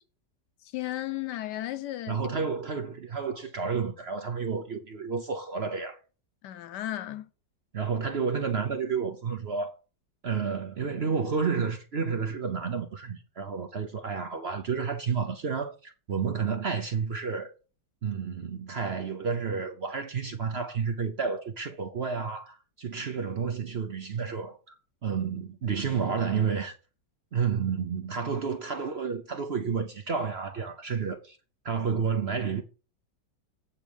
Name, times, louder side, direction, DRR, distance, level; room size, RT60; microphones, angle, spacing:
voice 1, 0.6-2.3 6.4-7.3, left 14 dB, 80° left, 1.3 m, -34 dB
voice 2, 2.1-6.0 7.7-9.7 10.2-17.5 18.0-24.8 25.0-26.7 27.3-31.4 31.6-32.6, right 6 dB, 50° right, 0.8 m, -30 dB
8.3 x 4.7 x 7.0 m
omnidirectional pair, 1.9 m